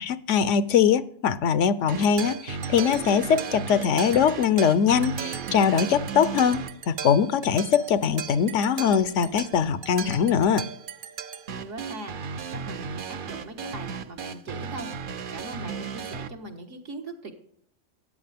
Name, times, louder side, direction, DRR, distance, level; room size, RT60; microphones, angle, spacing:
voice 1, 0.0-10.6, left 7 dB, 75° left, 15 dB, 1.0 m, -22 dB
sound 1, 1.9-16.3, right 6 dB, 50° right, 0.7 m, -35 dB
voice 2, 11.5-12.2 12.5-17.3, right 2 dB, 70° right, 3 dB, 1.9 m, -40 dB
13.5 x 9.3 x 3.5 m, 0.64 s
omnidirectional pair, 1.3 m